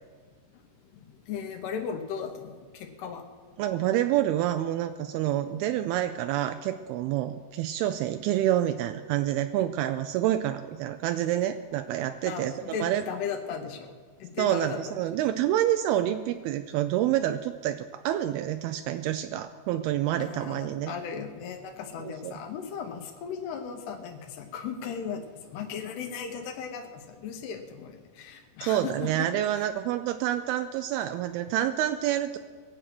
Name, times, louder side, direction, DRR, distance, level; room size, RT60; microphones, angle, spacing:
voice 1, 1.3-3.2 12.2-13.9 14.2-14.8 20.2-29.3 29.5-29.7, left 7 dB, 90° left, 4 dB, 3.2 m, -36 dB
voice 2, 3.6-13.0 14.4-20.9 22.2-22.3 28.6-32.4, right 12 dB, 85° right, 8 dB, 2.5 m, -28 dB
22.5 x 7.9 x 6.0 m, 1.5 s
omnidirectional pair, 4.6 m